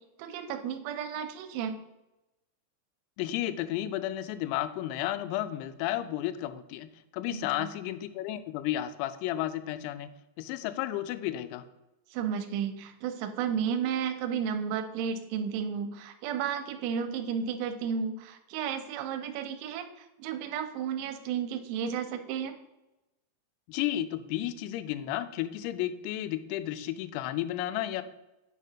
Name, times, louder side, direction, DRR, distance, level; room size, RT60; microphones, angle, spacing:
voice 1, 0.2-1.8 7.3-7.7 12.1-22.5, right 7 dB, 80° right, 6 dB, 2.9 m, -33 dB
voice 2, 3.2-10.1 10.4-11.6 23.7-28.0, left 13 dB, 90° left, 11 dB, 3.3 m, -32 dB
8.3 x 5.8 x 2.8 m, 0.97 s
omnidirectional pair, 6.0 m